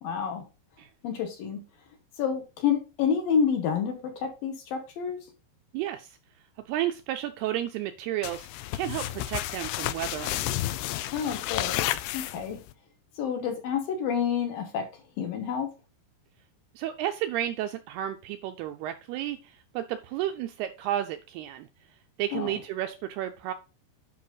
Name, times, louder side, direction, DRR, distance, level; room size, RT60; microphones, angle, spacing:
voice 1, 0.0-0.5 1.0-1.6 2.2-5.2 11.1-12.6 13.2-14.9 15.2-15.7 22.3-22.5, left 7 dB, 65° left, 2.6 m, -29 dB
voice 2, 5.7-6.2 6.7-8.5 8.7-10.6 16.8-21.7 22.2-23.5, right 12 dB, 85° right, 2.3 m, -32 dB
sound 1, 8.2-12.7, left 15 dB, 85° left, 2.3 m, -31 dB
10.5 x 5.5 x 3.9 m
omnidirectional pair, 5.1 m